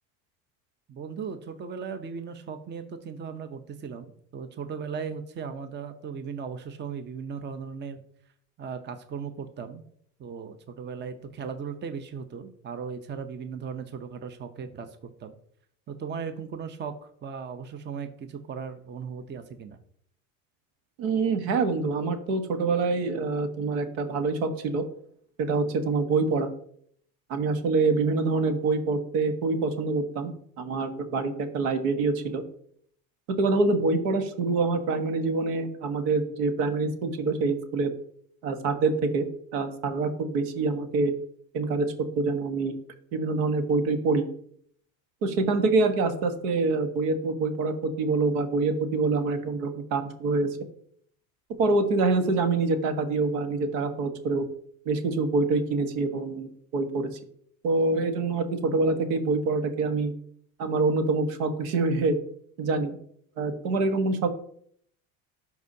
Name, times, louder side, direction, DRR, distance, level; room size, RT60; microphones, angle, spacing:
voice 1, 0.9-8.0 8.6-9.8 10.2-15.3 15.9-19.8, right 6 dB, 25° right, 9 dB, 0.7 m, -37 dB
voice 2, 21.0-24.8 25.4-26.5 27.3-32.4 33.3-37.9 38.4-41.1 41.5-42.7 43.1-44.2 45.2-50.6 51.6-54.4 54.8-57.1 57.6-60.1 60.6-62.2 62.6-63.0 63.4-64.3, right 3 dB, 75° right, 8 dB, 1.3 m, -26 dB
11.5 x 4.7 x 2.8 m, 0.65 s
supercardioid pair, 100°, 41 cm